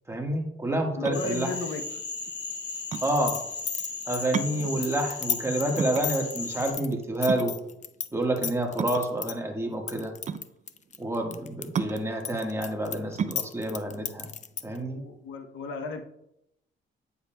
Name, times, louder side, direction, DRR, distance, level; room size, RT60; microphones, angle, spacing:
voice 1, 0.1-1.5 3.0-3.4 4.1-7.6 8.1-10.1 11.0-14.3 14.6-15.0, right 1 dB, 15° right, 1 dB, 1.4 m, -28 dB
voice 2, 0.9-2.0 14.8-16.0, left 4 dB, 80° left, 7 dB, 0.8 m, -35 dB
sound 1, 0.9-15.3, right 7 dB, 40° right, 0.4 m, -36 dB
Cricket / Frog, 1.1-6.7, left 4 dB, 60° left, 2.3 m, -36 dB
sound 2, 2.9-8.1 8.4-9.3 9.9-11.7 12.0-14.8, left 8 dB, 40° left, 0.4 m, -33 dB
9.3 x 7.0 x 2.2 m, 0.80 s
cardioid pair, 90°, 20 cm